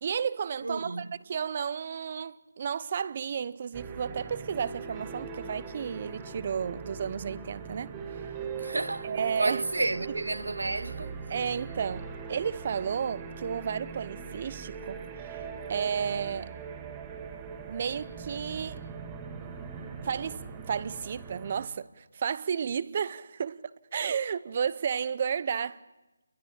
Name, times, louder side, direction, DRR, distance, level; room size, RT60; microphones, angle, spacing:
voice 1, 0.0-8.3 9.0-9.6 11.3-15.4 15.7-16.5 17.7-18.8 20.0-23.6 23.9-25.8, right 7 dB, 35° right, 0.8 m, -32 dB
voice 2, 0.6-1.1 8.6-9.1 9.4-11.2, right 2 dB, 80° right, 0.9 m, -31 dB
sound 1, 3.7-21.7, right 6 dB, 15° right, 1.9 m, -41 dB
29.0 x 22.5 x 7.2 m
figure-of-eight pair, 160°, 0 cm